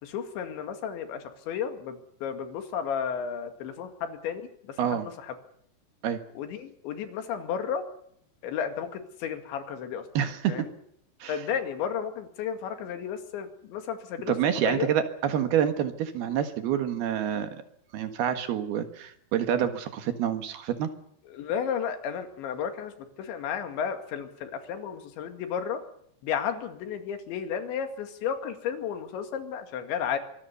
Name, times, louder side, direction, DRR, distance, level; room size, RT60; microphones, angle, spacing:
voice 1, 0.0-4.4 4.7-5.3 6.4-7.8 8.4-10.0 10.5-10.7 11.3-14.9 21.3-22.9 23.2-25.8 26.2-30.2, left 7 dB, 90° left, 7 dB, 4.5 m, -33 dB
voice 2, 10.1-10.7 11.2-11.4 14.3-17.5 17.9-20.9, right 9 dB, 65° right, 8 dB, 3.4 m, -27 dB
24.0 x 20.0 x 7.0 m, 0.70 s
omnidirectional pair, 5.0 m